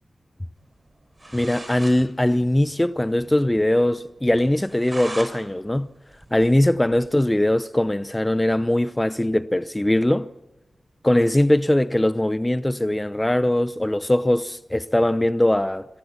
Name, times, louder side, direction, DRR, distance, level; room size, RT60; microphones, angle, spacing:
sound 1, 0.9-1.0 1.2-2.0 2.3-2.4 2.7-2.8 3.2-3.3 3.7-3.8 4.4-5.3 5.7-7.1, right 1 dB, 25° right, 6.4 m, -38 dB
voice 1, 1.3-5.9 6.3-10.3 11.0-15.9, left 1 dB, 15° left, 0.7 m, -21 dB
26.0 x 23.0 x 5.8 m
wide cardioid pair, 70°, 0 cm